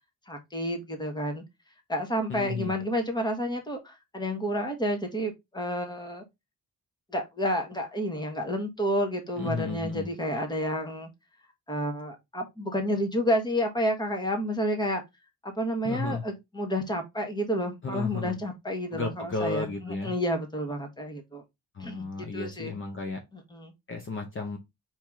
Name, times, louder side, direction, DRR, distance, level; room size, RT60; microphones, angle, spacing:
voice 1, 0.3-1.4 1.9-6.2 7.1-11.1 11.7-15.0 15.4-21.4 21.8-22.8 23.5-23.7, equal, 10° left, 1.3 m, -30 dB
voice 2, 2.3-2.8 9.4-10.1 15.8-16.2 17.8-18.4 18.9-20.1 21.7-23.2 23.9-24.6, left 3 dB, 35° left, 0.9 m, -33 dB
4.7 x 3.0 x 3.6 m
cardioid pair, 115°, 36 cm